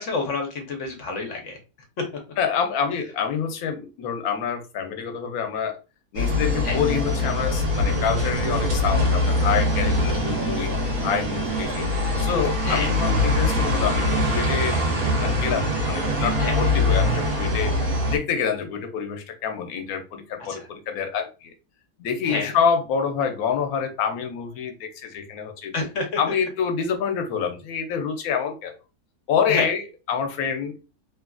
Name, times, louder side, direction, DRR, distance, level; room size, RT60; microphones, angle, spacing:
voice 1, 0.0-1.6 2.0-2.1 6.6-6.8 12.6-12.9 16.4-16.5 20.5-20.7 22.2-22.5 25.7-26.1 29.5-29.7, left 3 dB, 60° left, 2 dB, 1.0 m, -28 dB
voice 2, 2.4-5.8 6.1-10.7 11.0-11.9 12.2-14.8 15.2-17.7 18.1-21.5 22.0-25.7 26.2-28.7 29.3-30.8, left 7 dB, 90° left, 5 dB, 1.1 m, -27 dB
sound 1, 6.2-18.2, left 1 dB, 80° right, 1.4 m, -23 dB
3.0 x 2.4 x 2.2 m, 0.30 s
omnidirectional pair, 1.5 m